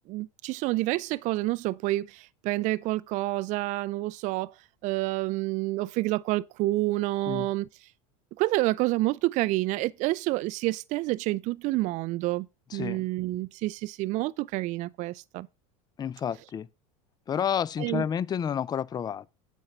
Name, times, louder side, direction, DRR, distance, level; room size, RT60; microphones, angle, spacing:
voice 1, 0.1-4.5 4.8-7.7 8.4-12.5 12.7-15.5 17.8-18.0, right 18 dB, 45° right, 0.4 m, -28 dB
voice 2, 12.7-13.0 16.0-16.7 17.3-19.3, left 8 dB, 25° left, 0.4 m, -30 dB
8.8 x 5.2 x 5.4 m
supercardioid pair, 105°, 17 cm